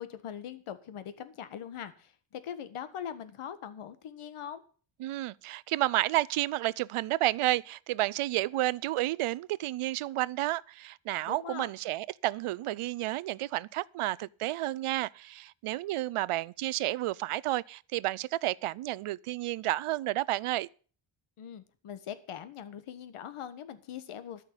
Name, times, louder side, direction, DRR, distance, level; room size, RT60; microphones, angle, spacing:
voice 1, 0.0-4.6 11.3-11.7 21.4-24.4, left 9 dB, 80° left, 1.6 m, -42 dB
voice 2, 5.0-20.7, right 16 dB, 80° right, 0.6 m, -31 dB
13.5 x 6.0 x 8.9 m
wide cardioid pair, 160°, 50 cm